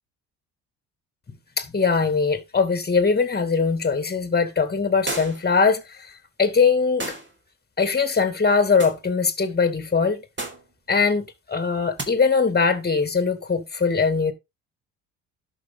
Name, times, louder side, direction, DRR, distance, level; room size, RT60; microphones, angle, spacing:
voice 1, 1.6-5.8 6.4-7.1 7.8-10.2 10.9-14.3, left 5 dB, 25° left, 2.4 m, -21 dB
sound 1, 5.1-5.5 7.0-7.3 8.8-9.0 10.4-10.7 12.0-12.1, right 2 dB, 25° right, 4.2 m, -32 dB
11.5 x 6.3 x 4.0 m
hypercardioid pair, 55°, 41 cm